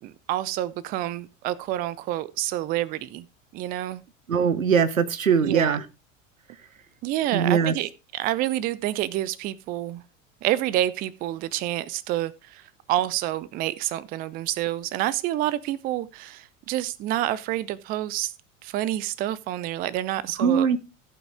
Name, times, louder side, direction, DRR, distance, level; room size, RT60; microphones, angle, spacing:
voice 1, 0.0-3.3 3.5-4.0 5.4-5.8 7.0-10.0 10.4-18.3 18.6-20.8, right 14 dB, 25° right, 0.4 m, -28 dB
voice 2, 4.3-5.8 7.3-7.7 20.4-20.8, right 6 dB, 80° right, 0.8 m, -21 dB
15.5 x 5.6 x 3.5 m
figure-of-eight pair, 80°, 40 cm